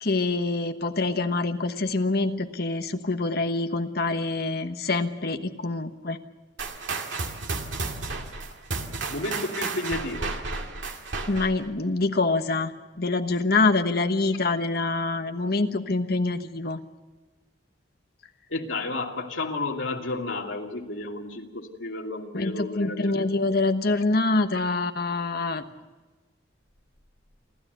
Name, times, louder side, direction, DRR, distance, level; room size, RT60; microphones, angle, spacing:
voice 1, 0.0-6.2 11.3-12.7 13.0-16.8 22.3-25.6, left 3 dB, 50° left, 7 dB, 1.2 m, -25 dB
sound 1, 6.6-11.7, right 3 dB, 70° right, 2.1 m, -32 dB
voice 2, 9.1-10.3 18.5-23.3, left 2 dB, 80° left, 1 dB, 2.6 m, -32 dB
28.5 x 12.5 x 8.1 m, 1.3 s
head